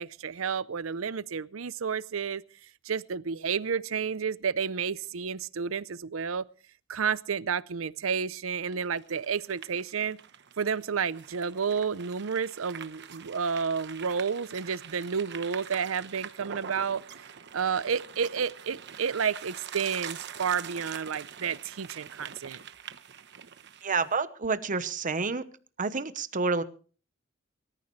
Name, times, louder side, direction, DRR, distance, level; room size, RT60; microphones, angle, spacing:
voice 1, 0.0-2.4 2.8-6.4 6.9-10.2 10.6-17.0 17.5-22.6, right 6 dB, 90° right, 0.6 m, -31 dB
sound 1, 8.7-24.1, right 8 dB, 60° right, 1.0 m, -44 dB
voice 2, 23.8-25.5 25.8-26.6, right 4 dB, 40° right, 1.0 m, -29 dB
23.5 x 14.0 x 3.2 m
head